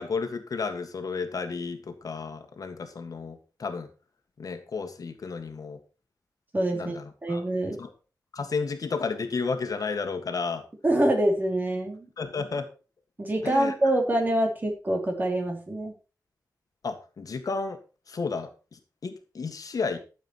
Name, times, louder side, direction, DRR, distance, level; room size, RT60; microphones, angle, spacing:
voice 1, 0.0-3.9 4.4-5.8 6.7-7.4 7.8-7.9 8.3-10.6 12.2-12.7 13.4-13.7 16.8-17.8 18.1-20.0, left 4 dB, 65° left, 7 dB, 1.7 m, -32 dB
voice 2, 6.5-7.8 10.8-12.1 13.2-15.9, right 1 dB, 25° right, 3 dB, 3.0 m, -25 dB
13.0 x 7.3 x 4.4 m, 0.33 s
wide cardioid pair, 140°, 7 cm